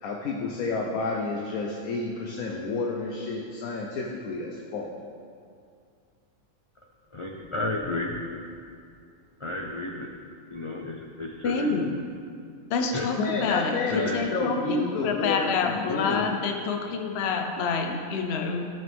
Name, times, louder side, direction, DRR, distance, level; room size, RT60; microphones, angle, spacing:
voice 1, 0.0-4.9 13.2-16.3, left 3 dB, 80° left, 0 dB, 1.3 m, -30 dB
voice 2, 7.1-8.2 9.4-10.1 10.5-11.8 12.9-13.1 13.9-14.2, left 2 dB, 40° left, -1 dB, 0.4 m, -32 dB
voice 3, 11.4-11.9 12.7-18.7, left 4 dB, 55° left, 4 dB, 0.9 m, -27 dB
14.0 x 6.1 x 3.5 m, 2.3 s
omnidirectional pair, 1.5 m